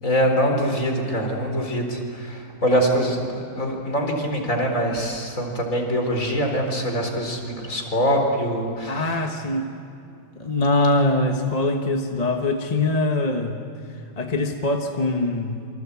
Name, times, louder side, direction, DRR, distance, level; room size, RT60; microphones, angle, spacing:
voice 1, 0.0-9.1, equal, 45° left, 2 dB, 4.6 m, -24 dB
voice 2, 8.9-9.7 10.4-13.6 14.2-15.6, left 2 dB, 25° left, 3 dB, 1.3 m, -23 dB
27.5 x 25.0 x 8.4 m, 2.6 s
omnidirectional pair, 1.9 m